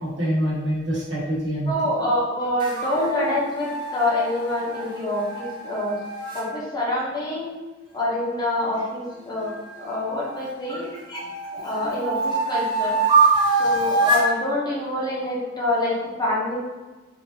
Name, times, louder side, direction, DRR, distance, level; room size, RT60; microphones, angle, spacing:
voice 1, 0.0-2.1 9.1-9.7 10.8-11.2, equal, 60° right, -8 dB, 1.3 m, -28 dB
voice 2, 1.7-5.9 6.3-7.5 7.9-9.5 9.8-11.2 11.5-13.0 13.5-16.6, left 1 dB, 20° left, -7 dB, 0.7 m, -26 dB
sound 1, 2.6-6.4 9.4-10.6 11.1-14.3, right 3 dB, 25° right, 0.6 m, -24 dB
3.3 x 2.7 x 2.7 m, 1.2 s
head